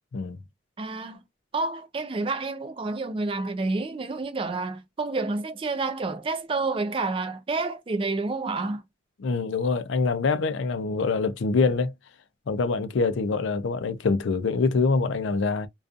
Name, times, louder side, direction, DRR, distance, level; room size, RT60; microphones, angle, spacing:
voice 1, 0.8-1.2 1.5-8.8, right 3 dB, 25° right, 0.4 m, -29 dB
voice 2, 9.2-11.9 12.5-15.7, left 4 dB, 70° left, 0.4 m, -25 dB
2.4 x 2.3 x 2.4 m
head